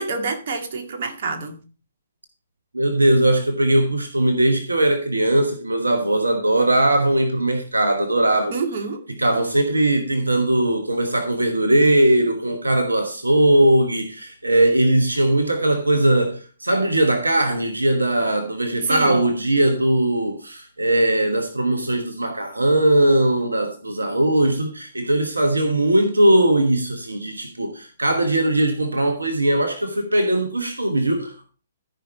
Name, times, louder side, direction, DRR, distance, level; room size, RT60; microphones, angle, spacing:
voice 1, 0.0-1.6 8.5-9.0 18.8-19.2, right 4 dB, 55° right, 2.1 m, -27 dB
voice 2, 2.7-8.6 9.1-31.5, right 1 dB, 85° right, 1.2 m, -19 dB
14.0 x 5.5 x 4.3 m
figure-of-eight pair, 125°, 0 cm